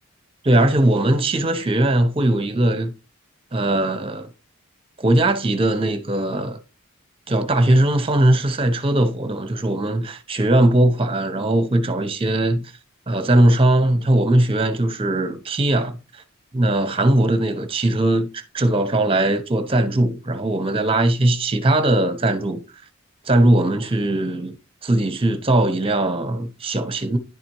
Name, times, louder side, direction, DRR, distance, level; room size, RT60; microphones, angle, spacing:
voice 1, 0.4-2.9 3.5-4.3 5.0-6.6 7.3-12.7 13.1-15.9 16.5-22.6 23.2-24.6 24.8-27.2, right 1 dB, 25° right, 0.9 m, -19 dB
11.0 x 4.3 x 3.0 m
head